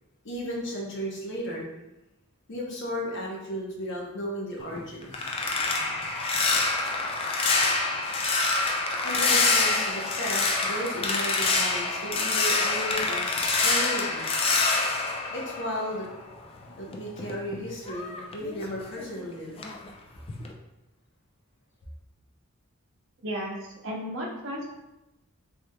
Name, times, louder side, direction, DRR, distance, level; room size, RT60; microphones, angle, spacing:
voice 1, 0.2-1.6 2.5-5.9 6.3-7.1 9.0-14.4 15.3-16.1 16.8-19.5, equal, 60° left, -2 dB, 0.8 m, -35 dB
sound 1, 4.6-16.2 16.6-19.2 19.6-19.9 20.3-20.5, left 3 dB, 25° left, 0.3 m, -26 dB
voice 2, 23.2-23.5 23.8-24.7, equal, 65° right, -2 dB, 0.8 m, -33 dB
3.4 x 3.1 x 2.2 m, 0.95 s
head